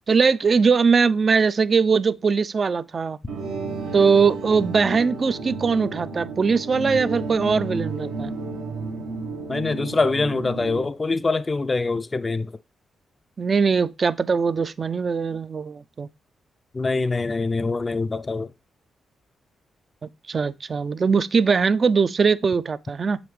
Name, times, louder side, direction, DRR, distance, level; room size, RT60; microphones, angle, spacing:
voice 1, 0.1-3.2 3.9-8.3 13.4-16.1 20.0-23.2, right 5 dB, 50° right, 0.3 m, -21 dB
sound 1, 3.3-10.9, right 3 dB, 85° right, 0.9 m, -32 dB
voice 2, 9.5-12.5 16.7-18.5, left 3 dB, 35° left, 0.3 m, -24 dB
6.9 x 5.0 x 3.2 m
supercardioid pair, 45°, 0 cm